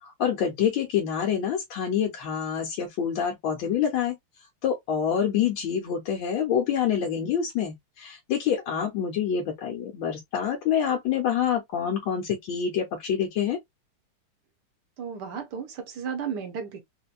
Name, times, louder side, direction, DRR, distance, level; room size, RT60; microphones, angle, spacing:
voice 1, 0.0-4.2 4.6-13.6, left 8 dB, 70° left, 1.3 m, -26 dB
voice 2, 15.0-16.8, right 7 dB, 65° right, 1.2 m, -34 dB
4.2 x 2.1 x 2.3 m
omnidirectional pair, 2.4 m